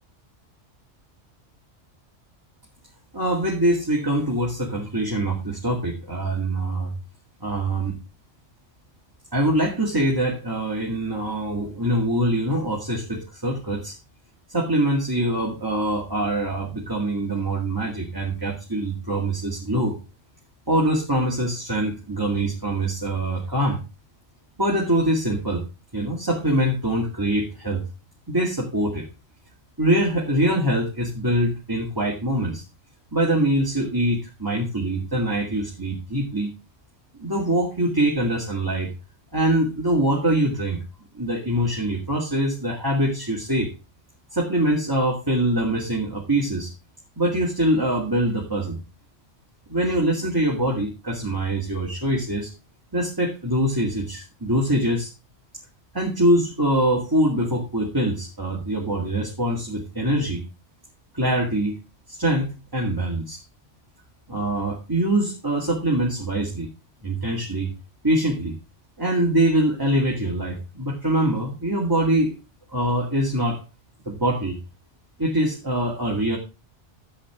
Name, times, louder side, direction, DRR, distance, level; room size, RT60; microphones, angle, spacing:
voice 1, 3.1-7.0 7.4-8.0 9.3-14.0 14.5-20.0 20.7-23.8 24.6-25.6 25.9-27.8 28.3-29.1 29.8-32.6 33.1-36.5 37.2-38.9 39.3-40.8 41.1-43.7 44.3-46.7 47.2-48.8 49.7-52.5 52.9-55.1 55.9-60.4 61.1-61.8 62.1-63.4 64.3-66.7 67.0-67.7 68.0-68.6 69.0-72.3 72.7-73.6 74.1-74.6 75.2-76.4, right 1 dB, 20° right, -2 dB, 2.1 m, -23 dB
12.5 x 7.9 x 3.6 m, 0.28 s
omnidirectional pair, 1.2 m